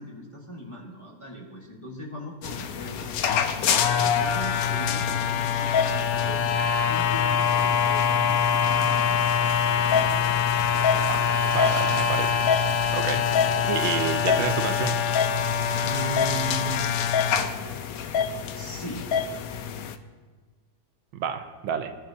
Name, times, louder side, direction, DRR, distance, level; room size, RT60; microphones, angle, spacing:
voice 1, 0.0-3.1 3.7-9.3 9.7-10.2 13.2-13.5 15.7-16.8 18.5-19.1, right 1 dB, 15° left, -2 dB, 1.3 m, -39 dB
sound 1, 2.4-20.0, left 7 dB, 75° left, 0.8 m, -24 dB
sound 2, 6.2-6.8 7.8-8.3 11.2-11.9 12.9-14.0 15.1-15.5 15.9-17.0 17.3-17.8, right 2 dB, 45° right, 1.2 m, -46 dB
voice 2, 11.1-12.4 12.9-13.2 13.6-15.0 21.1-21.9, right 8 dB, 80° right, 8 dB, 1.5 m, -29 dB
19.5 x 11.0 x 2.8 m, 1.4 s
omnidirectional pair, 2.2 m